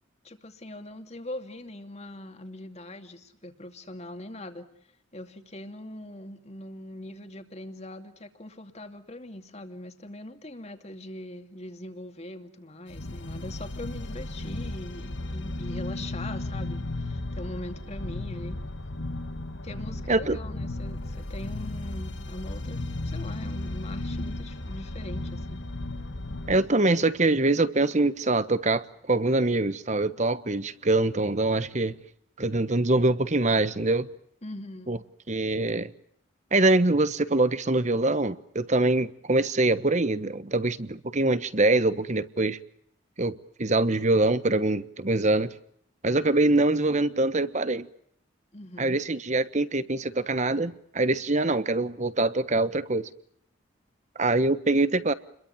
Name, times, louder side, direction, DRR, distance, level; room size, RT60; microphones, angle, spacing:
voice 1, 0.2-4.7 5.1-18.6 19.6-25.6 34.4-35.0 48.5-49.0, left 1 dB, 35° left, 2.6 m, -41 dB
sound 1, 12.9-26.6, left 2 dB, 65° left, 1.9 m, -35 dB
voice 2, 26.5-32.0 32.4-34.1 34.9-35.0 35.3-35.9 36.5-42.6 43.2-45.5 46.0-47.9 48.8-53.1 54.2-55.1, right 2 dB, 35° right, 1.2 m, -24 dB
30.0 x 22.5 x 7.2 m
head